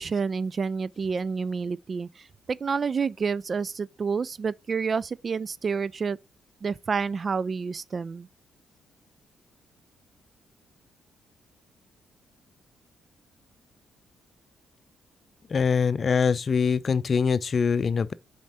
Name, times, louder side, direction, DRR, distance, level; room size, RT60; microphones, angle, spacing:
voice 1, 0.0-6.2 6.6-8.3, right 5 dB, 45° right, 0.3 m, -29 dB
voice 2, 15.5-18.1, left 6 dB, 45° left, 0.5 m, -23 dB
7.3 x 4.5 x 4.0 m
hypercardioid pair, 45°, 0 cm